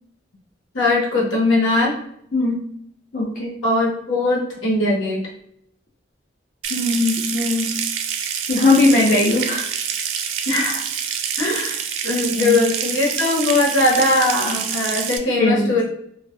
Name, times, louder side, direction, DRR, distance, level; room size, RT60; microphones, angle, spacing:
voice 1, 0.7-2.0 3.6-5.3 10.5-10.8 11.4-15.8, left 2 dB, 85° left, -3 dB, 0.9 m, -20 dB
voice 2, 2.3-2.7 3.1-3.6 6.7-7.8 8.5-9.7 12.3-12.6 15.4-15.7, left 2 dB, 45° left, -3 dB, 0.4 m, -19 dB
Water tap faucet / Sink (filling or washing) / Trickle dribble, 6.6-15.2, right 8 dB, 85° right, 0.3 m, -26 dB
2.3 x 2.0 x 2.6 m, 0.72 s
head